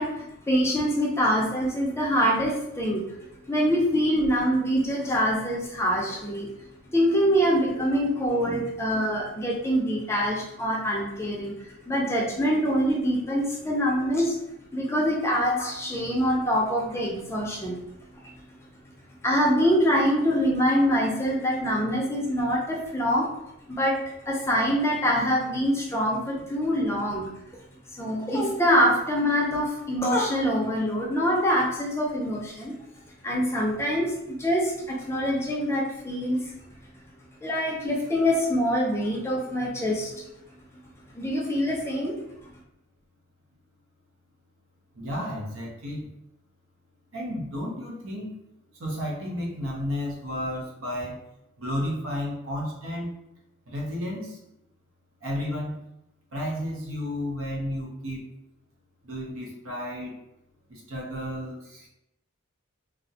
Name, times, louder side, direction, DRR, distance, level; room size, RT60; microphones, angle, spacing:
voice 1, 0.0-3.1 3.5-6.5 6.9-14.3 14.7-17.8 19.2-23.3 23.7-27.3 27.9-32.7 33.2-36.5 37.4-40.3 41.1-42.2, equal, 15° left, -2 dB, 0.4 m, -25 dB
voice 2, 44.9-46.1 47.1-48.3 48.8-51.2 51.6-53.1 53.7-54.4 55.2-55.8 56.3-58.2 59.0-60.2 60.7-61.9, equal, 85° right, -2 dB, 0.7 m, -32 dB
2.3 x 2.1 x 2.7 m, 0.85 s
head